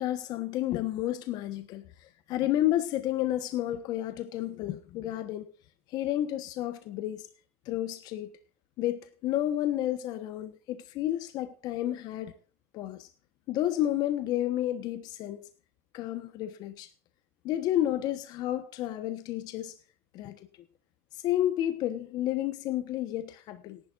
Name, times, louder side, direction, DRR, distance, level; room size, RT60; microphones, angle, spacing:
voice 1, 0.0-5.5 5.9-7.3 7.6-8.3 8.8-12.3 12.7-13.1 13.5-15.4 15.9-16.9 17.4-19.8 20.1-20.4 21.2-23.8, left 13 dB, 55° left, 1.2 m, -31 dB
18.5 x 11.5 x 2.6 m
hypercardioid pair, 95°, 8 cm